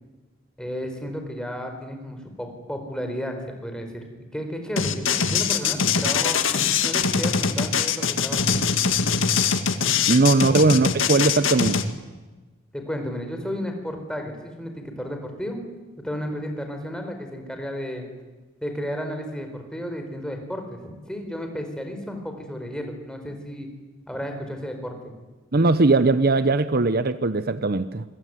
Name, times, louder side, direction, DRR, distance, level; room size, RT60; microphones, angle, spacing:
voice 1, 0.6-3.3 3.6-4.0 4.3-6.4 6.8-8.5 10.4-10.6 12.7-15.6 16.0-18.1 18.6-23.7 24.1-25.1, equal, 5° left, 4 dB, 4.7 m, -33 dB
sound 1, 4.8-11.8, left 6 dB, 75° left, 2.0 m, -22 dB
voice 2, 10.1-11.9 25.5-28.0, right 3 dB, 50° right, 13 dB, 0.8 m, -19 dB
26.5 x 22.5 x 9.5 m, 1.2 s
head